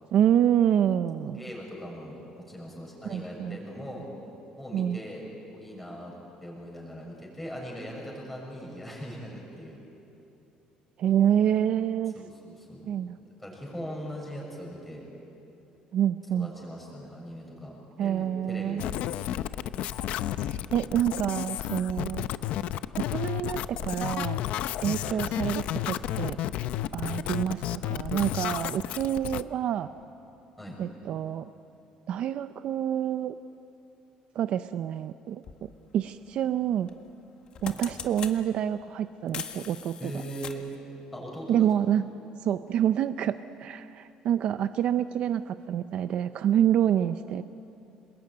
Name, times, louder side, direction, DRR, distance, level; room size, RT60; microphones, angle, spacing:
voice 1, 0.1-1.4 3.0-3.6 4.7-5.0 11.0-12.1 12.9-13.2 15.9-16.5 18.0-18.8 20.3-22.3 23.1-24.4 24.8-26.4 26.9-29.9 30.8-31.5 32.1-33.3 34.3-36.9 37.6-40.1 41.5-42.1 42.4-47.4, right 10 dB, 50° right, 11 dB, 0.6 m, -27 dB
voice 2, 1.4-4.1 4.6-5.2 5.5-6.1 6.4-9.8 12.1-12.9 13.4-15.0 16.3-17.7 18.0-18.9 25.0-25.3 30.6-30.8 40.0-40.6 41.1-41.7, equal, 5° left, -2 dB, 6.7 m, -40 dB
sound 1, 18.8-29.4, left 12 dB, 65° left, 0.7 m, -32 dB
sound 2, 35.4-35.6 36.9-37.1 37.4-38.4 39.3-40.8, left 7 dB, 40° left, 1.6 m, -39 dB
27.0 x 20.5 x 9.4 m, 2.9 s
cardioid pair, 160°, 2 cm